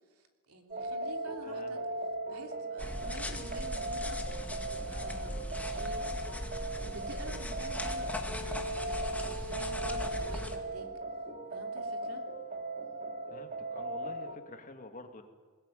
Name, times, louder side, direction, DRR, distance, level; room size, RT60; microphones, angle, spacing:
voice 1, 0.1-1.8 2.3-6.4 6.8-10.9 11.5-12.2, right 2 dB, 85° right, 3 dB, 3.2 m, -48 dB
sound 1, 0.7-14.4, right 2 dB, 40° right, 3.2 m, -38 dB
voice 2, 1.4-1.8 13.3-15.3, left 2 dB, 35° left, 5 dB, 2.3 m, -48 dB
sound 2, 2.8-10.6, left 1 dB, 5° left, 1.8 m, -39 dB
20.5 x 20.5 x 9.2 m, 1.5 s
head